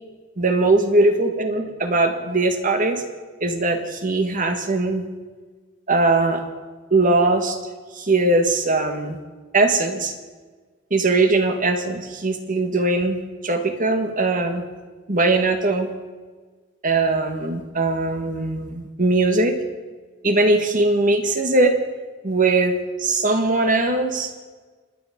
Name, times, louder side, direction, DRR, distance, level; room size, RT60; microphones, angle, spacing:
voice 1, 0.4-3.0 3.4-5.0 5.9-6.4 6.9-7.6 7.9-9.2 9.5-10.1 10.9-14.6 15.1-15.9 16.8-19.6 20.2-21.8 22.2-24.3, right 2 dB, 45° right, 6 dB, 1.8 m, -20 dB
26.5 x 10.0 x 5.3 m, 1.4 s
head